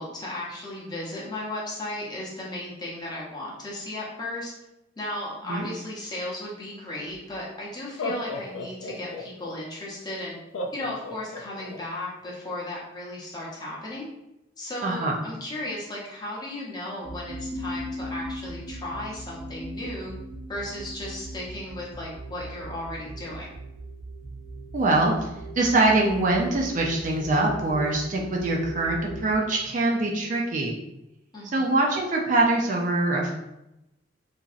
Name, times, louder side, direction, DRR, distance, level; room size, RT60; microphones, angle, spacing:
voice 1, 0.0-4.5 5.0-10.4 10.7-14.1 14.6-20.1 20.5-23.5 31.3-31.7, left 1 dB, 20° left, -5 dB, 0.7 m, -35 dB
Laughter, 7.1-7.2 7.8-9.5 10.5-11.8, left 2 dB, 80° left, 0.4 m, -34 dB
voice 2, 14.8-15.2 24.7-25.1 25.6-30.7 31.4-33.3, right 2 dB, 40° right, 0 dB, 0.4 m, -23 dB
Pulsing Drone Ambience, 17.0-29.4, right 1 dB, 65° right, 0.8 m, -38 dB
2.9 x 2.6 x 2.4 m, 0.91 s
head